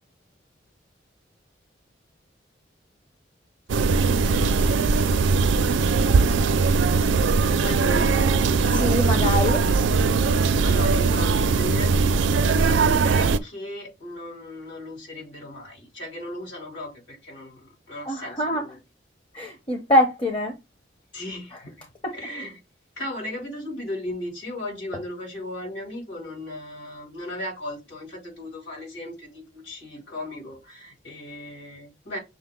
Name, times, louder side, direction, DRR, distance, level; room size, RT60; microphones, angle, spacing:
sound 1, 3.7-13.4, right 4 dB, 85° right, 0.4 m, -20 dB
voice 1, 4.2-4.9 7.4-8.7 10.3-18.8 21.1-21.8 22.1-22.6 23.0-32.2, left 1 dB, 85° left, 3.2 m, -36 dB
voice 2, 8.7-9.7 18.0-18.7 19.3-20.5 21.5-21.6 22.0-22.1, left 1 dB, 30° left, 0.8 m, -24 dB
6.3 x 2.2 x 3.7 m
head